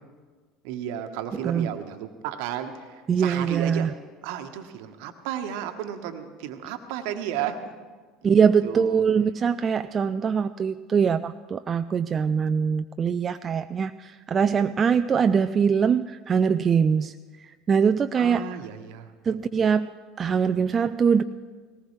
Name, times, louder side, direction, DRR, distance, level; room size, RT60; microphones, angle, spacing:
voice 1, 0.6-3.9 4.2-7.7 8.2-8.4 8.6-9.0 18.2-19.1, right 10 dB, 65° right, 8 dB, 1.2 m, -33 dB
voice 2, 3.1-3.9 8.2-18.6 19.2-19.9 20.2-21.2, right 6 dB, 35° right, 10 dB, 0.4 m, -23 dB
19.5 x 18.5 x 3.3 m, 1.5 s
figure-of-eight pair, 70°, 0 cm